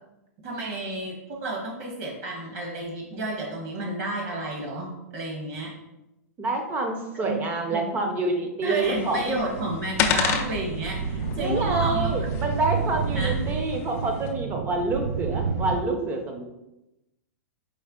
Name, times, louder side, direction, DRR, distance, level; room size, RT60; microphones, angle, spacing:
voice 1, 0.4-5.7 7.2-7.4 7.7-7.9 8.6-12.1 13.1-13.4, right 2 dB, 60° right, -1 dB, 1.3 m, -31 dB
voice 2, 6.4-9.4 11.4-16.4, right 2 dB, 20° right, 4 dB, 0.6 m, -27 dB
sound 1, 8.8-14.3, left 7 dB, 30° left, 0.4 m, -32 dB
sound 2, 8.9-15.8, right 5 dB, 75° right, 0.4 m, -30 dB
4.4 x 3.2 x 3.6 m, 0.93 s
hypercardioid pair, 155°, 9 cm